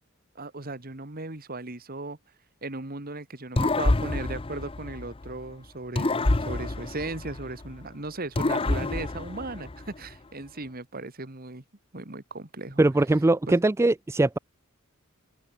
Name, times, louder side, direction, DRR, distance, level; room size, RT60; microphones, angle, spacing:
voice 1, 0.4-2.2 2.6-11.6 11.9-12.8 13.5-13.6, right 2 dB, 45° right, 2.0 m, -37 dB
sound 1, 3.6-5.4 6.0-7.8 8.3-10.1, left 2 dB, 25° left, 0.7 m, -28 dB
voice 2, 12.8-14.4, right 2 dB, 10° right, 0.3 m, -21 dB
open air
head